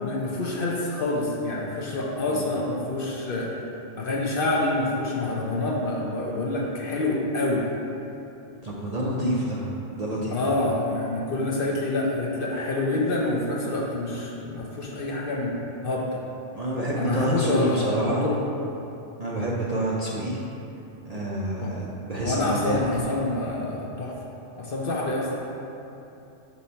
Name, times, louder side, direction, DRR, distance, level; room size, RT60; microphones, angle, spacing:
voice 1, 0.0-3.5 4.0-7.6 9.2-9.3 10.3-16.2 17.0-18.4 21.6-21.7 22.2-24.2 24.6-25.4, left 2 dB, 55° left, -2 dB, 0.7 m, -27 dB
voice 2, 8.6-9.6 9.9-10.5 16.5-18.3 19.2-20.4 21.0-23.0, right 1 dB, 60° right, -5 dB, 0.4 m, -28 dB
5.4 x 4.3 x 4.2 m, 2.8 s
omnidirectional pair, 1.3 m